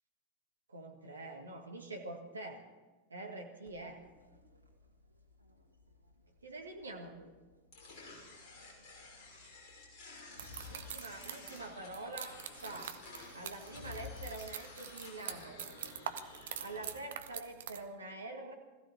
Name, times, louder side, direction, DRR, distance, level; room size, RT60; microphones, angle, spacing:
voice 1, 0.7-2.6 3.1-4.1 6.4-7.3 10.7-12.9 13.3-15.6 16.6-18.5, right 2 dB, 75° right, 3 dB, 1.8 m, -45 dB
Crowd, 3.7-14.4, left 5 dB, 90° left, 1.8 m, -56 dB
sound 1, 7.7-16.9, left 3 dB, 45° left, 5.7 m, -53 dB
sound 2, 10.4-17.8, right 9 dB, 60° right, 0.9 m, -45 dB
20.5 x 15.0 x 4.3 m, 1.2 s
figure-of-eight pair, 90°, 0 cm